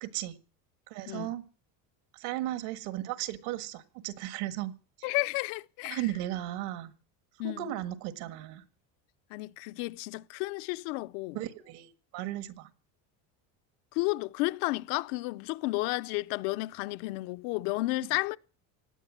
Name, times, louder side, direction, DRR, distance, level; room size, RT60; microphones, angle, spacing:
voice 1, 0.0-0.4 0.9-1.4 2.2-4.7 5.9-6.9 7.4-8.7 11.3-12.7, right 14 dB, 80° right, 1.7 m, -36 dB
voice 2, 5.0-6.1 7.4-7.8 9.3-11.4 13.9-18.4, left 21 dB, 85° left, 0.7 m, -32 dB
17.5 x 9.8 x 7.3 m
cardioid pair, 140°, 39 cm